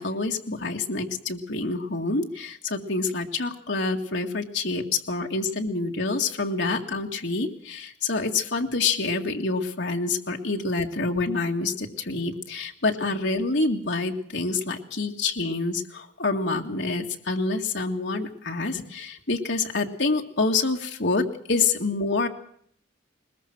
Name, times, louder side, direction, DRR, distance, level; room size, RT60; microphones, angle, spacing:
voice 1, 0.0-22.3, left 3 dB, 70° left, 2 dB, 2.1 m, -27 dB
21.5 x 20.5 x 6.2 m, 0.63 s
head